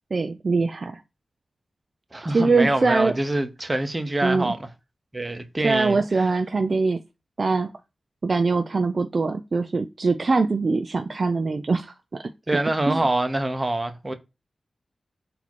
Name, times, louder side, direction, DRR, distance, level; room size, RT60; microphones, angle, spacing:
voice 1, 0.1-1.0 2.3-3.1 4.2-4.5 5.6-7.0 7.4-7.7 8.2-11.9 12.5-13.0, right 3 dB, 50° right, 0.4 m, -23 dB
voice 2, 2.1-4.7 5.1-6.3 12.5-14.1, right 1 dB, 25° right, 0.8 m, -25 dB
4.1 x 2.8 x 4.5 m
wide cardioid pair, 80°, 0 cm